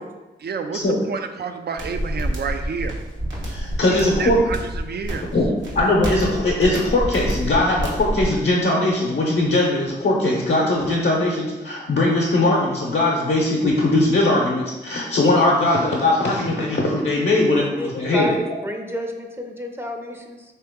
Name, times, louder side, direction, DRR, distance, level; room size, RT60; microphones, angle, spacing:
voice 1, 0.4-2.9 4.2-5.3, right 5 dB, 60° right, 7 dB, 0.4 m, -29 dB
sound 1, 1.8-8.3, equal, 80° right, 1.0 m, -28 dB
voice 2, 3.5-4.4 5.2-18.3, left 2 dB, 70° left, -3 dB, 0.7 m, -20 dB
voice 3, 17.8-20.4, equal, 10° right, 3 dB, 0.5 m, -30 dB
3.3 x 2.9 x 3.6 m, 1.1 s
cardioid pair, 45°, 19 cm